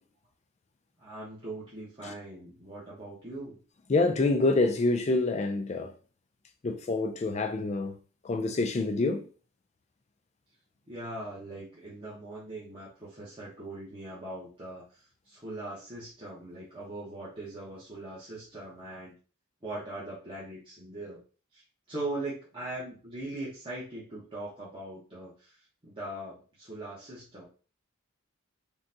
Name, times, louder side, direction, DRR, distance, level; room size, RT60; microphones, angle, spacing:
voice 1, 1.0-3.6 10.9-14.8 15.3-19.1 19.6-21.2 21.9-25.5 25.8-27.4, right 2 dB, 25° right, 0.9 m, -40 dB
voice 2, 3.9-5.9 6.6-8.0 8.2-9.3, left 3 dB, 30° left, 0.3 m, -27 dB
3.8 x 2.3 x 2.6 m
head